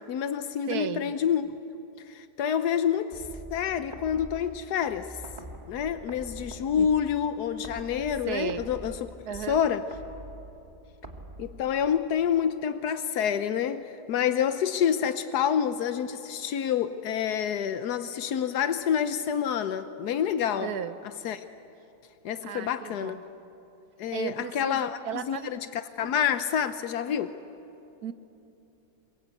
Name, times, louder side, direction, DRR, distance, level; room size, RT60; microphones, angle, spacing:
voice 1, 0.0-1.6 2.1-3.2 3.5-5.2 5.7-8.9 9.5-9.9 11.4-20.7 21.2-21.4 22.2-23.2 24.0-27.4, left 8 dB, 85° left, 1.3 m, -28 dB
voice 2, 0.7-1.1 6.8-6.9 8.3-8.7 9.2-9.6 20.6-21.0 22.4-23.2 24.1-25.6 28.0-28.1, right 9 dB, 75° right, 1.4 m, -35 dB
sound 1, 3.1-12.2, right 1 dB, 25° right, 2.1 m, -45 dB
27.0 x 23.5 x 8.3 m
omnidirectional pair, 1.7 m